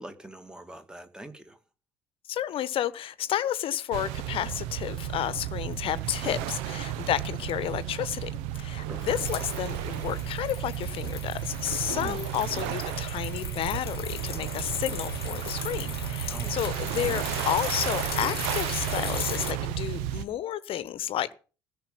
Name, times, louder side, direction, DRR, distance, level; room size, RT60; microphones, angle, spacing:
voice 1, 0.0-1.6 6.3-6.5 8.9-9.2 11.9-12.2 16.3-16.7, right 1 dB, 5° right, 2.4 m, -44 dB
voice 2, 2.3-21.3, left 11 dB, 45° left, 1.2 m, -31 dB
sound 1, 3.9-20.2, right 12 dB, 60° right, 1.2 m, -33 dB
sound 2, 9.0-19.5, left 9 dB, 75° left, 1.1 m, -38 dB
16.0 x 6.8 x 9.4 m
figure-of-eight pair, 55°, 13 cm